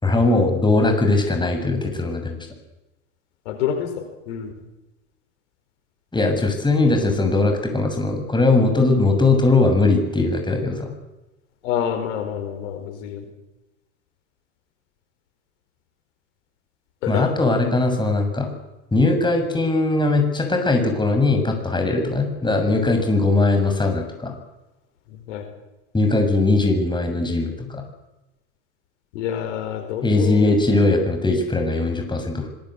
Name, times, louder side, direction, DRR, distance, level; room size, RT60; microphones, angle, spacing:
voice 1, 0.0-2.4 6.1-10.9 17.1-18.5 18.9-24.3 25.9-27.9 30.0-32.5, left 2 dB, 10° left, 4 dB, 7.3 m, -20 dB
voice 2, 3.5-4.5 11.6-13.3 17.0-17.3 25.1-25.4 29.1-30.5, left 9 dB, 70° left, 7 dB, 4.3 m, -27 dB
25.5 x 19.5 x 8.2 m, 1.0 s
hypercardioid pair, 80°, 37 cm